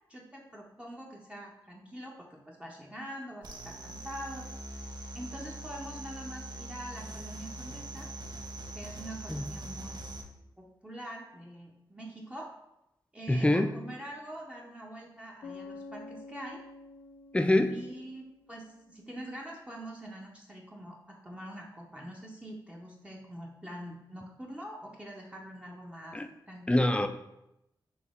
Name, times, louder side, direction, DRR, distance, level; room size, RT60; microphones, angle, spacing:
voice 1, 0.1-4.5 5.1-8.1 8.7-10.0 10.6-12.5 13.1-16.6 17.7-26.2 26.5-26.9, equal, 10° right, -2 dB, 0.8 m, -44 dB
sound 1, 3.4-10.2, right 1 dB, 55° right, 0.6 m, -42 dB
voice 2, 13.3-13.7 17.3-17.7 26.1-26.3 26.7-27.1, left 1 dB, 15° left, 8 dB, 0.4 m, -24 dB
Bass guitar, 15.4-19.1, left 3 dB, 80° left, 0.5 m, -48 dB
4.1 x 2.8 x 3.7 m, 0.87 s
cardioid pair, 45°, 9 cm